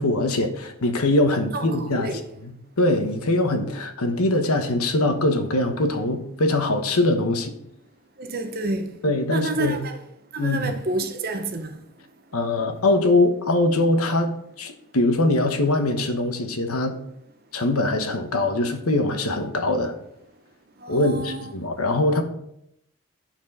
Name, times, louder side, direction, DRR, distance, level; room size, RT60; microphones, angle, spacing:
voice 1, 0.0-2.1 2.8-7.5 9.0-9.8 10.4-10.7 12.3-14.3 14.6-17.0 17.5-19.9 20.9-22.2, left 2 dB, 90° left, 1.1 m, -22 dB
voice 2, 1.4-2.3 8.2-9.0 9.3-10.0 10.3-11.8 20.8-21.6, right 2 dB, 45° right, 0.9 m, -29 dB
10.0 x 4.5 x 5.4 m
head